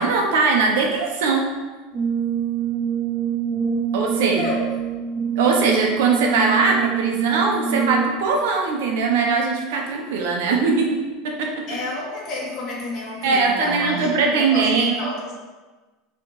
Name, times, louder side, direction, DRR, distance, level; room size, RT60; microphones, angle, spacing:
voice 1, 0.0-1.5 3.9-4.4 5.4-11.6 13.2-14.9, right 4 dB, 70° right, 1 dB, 1.1 m, -20 dB
Brass instrument, 1.9-8.3, right 8 dB, 20° right, 0.5 m, -25 dB
voice 2, 4.1-4.7 11.7-15.3, left 2 dB, 35° left, -3 dB, 1.6 m, -30 dB
6.0 x 3.4 x 4.9 m, 1.2 s
supercardioid pair, 170°, 0 cm